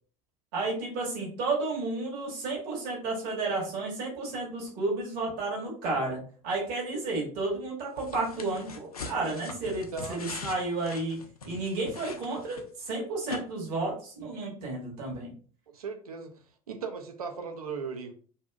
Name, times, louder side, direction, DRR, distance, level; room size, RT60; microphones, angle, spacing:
voice 1, 0.5-11.2 11.4-15.3, right 3 dB, 55° right, -2 dB, 1.2 m, -32 dB
sound 1, 8.0-12.9 13.3-13.4, left 4 dB, 90° left, 0.4 m, -42 dB
voice 2, 15.7-16.3 16.7-18.1, right 5 dB, 85° right, 5 dB, 0.5 m, -37 dB
2.7 x 2.5 x 2.2 m, 0.43 s
figure-of-eight pair, 65°, 18 cm